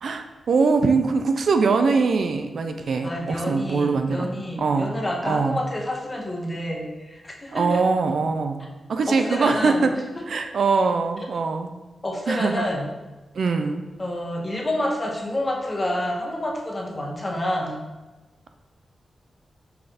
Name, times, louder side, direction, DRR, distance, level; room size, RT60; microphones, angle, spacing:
voice 1, 0.0-4.3 4.6-4.9 5.2-5.6 7.5-8.6 8.9-9.9 10.3-11.7 12.3-12.6 13.4-13.8, right 4 dB, 70° right, 6 dB, 0.3 m, -22 dB
voice 2, 3.0-7.8 9.1-10.3 12.0-12.9 14.0-17.8, left 1 dB, 25° left, -1 dB, 0.8 m, -28 dB
5.7 x 2.5 x 3.3 m, 1.2 s
wide cardioid pair, 125°, 0 cm